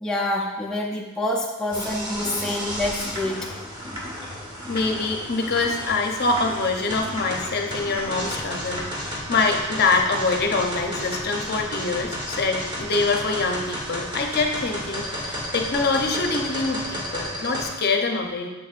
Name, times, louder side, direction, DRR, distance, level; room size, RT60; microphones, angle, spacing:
voice 1, 0.0-3.5, left 1 dB, 5° left, -3 dB, 0.5 m, -27 dB
sound 1, 1.7-17.7, equal, 20° right, 1.3 m, -32 dB
voice 2, 4.7-18.5, left 3 dB, 45° left, 3 dB, 0.7 m, -25 dB
7.7 x 7.4 x 2.5 m, 1.2 s
head